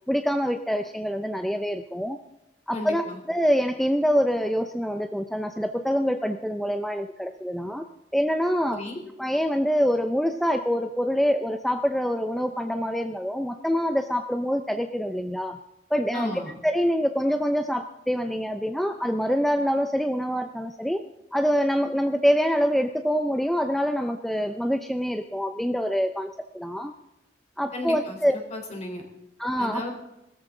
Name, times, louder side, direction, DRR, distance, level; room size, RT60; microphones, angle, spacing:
voice 1, 0.1-2.2 2.7-7.9 8.1-8.8 9.2-15.6 15.9-21.0 21.3-26.9 27.6-28.3 29.4-29.8, equal, ahead, 7 dB, 0.6 m, -25 dB
voice 2, 2.7-3.2 8.7-9.0 16.1-16.5 27.7-29.0 29.6-29.9, left 1 dB, 40° left, 2 dB, 3.9 m, -34 dB
19.5 x 13.5 x 3.8 m, 0.92 s
head